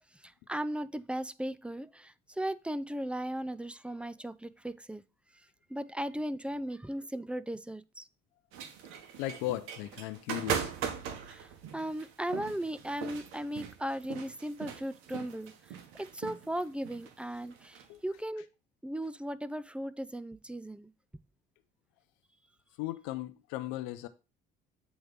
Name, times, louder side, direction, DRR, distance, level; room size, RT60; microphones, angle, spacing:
voice 1, 0.1-5.0 5.7-8.1 11.3-18.5 18.8-20.9, right 1 dB, 5° right, 0.4 m, -37 dB
sound 1, 8.5-17.9, right 7 dB, 75° right, 1.1 m, -40 dB
voice 2, 9.2-10.7 17.9-18.0 22.8-24.1, left 15 dB, 80° left, 0.6 m, -36 dB
8.0 x 3.2 x 5.2 m
supercardioid pair, 70°, 21 cm